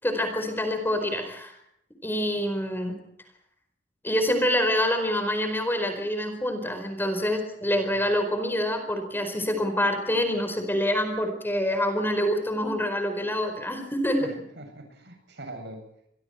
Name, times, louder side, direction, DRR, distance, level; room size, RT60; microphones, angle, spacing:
voice 1, 0.0-1.6 2.0-2.9 4.0-14.2, left 1 dB, 10° left, 6 dB, 4.5 m, -26 dB
voice 2, 7.6-8.0 14.2-15.8, right 1 dB, 65° right, 6 dB, 7.7 m, -43 dB
28.0 x 22.0 x 4.5 m, 0.74 s
head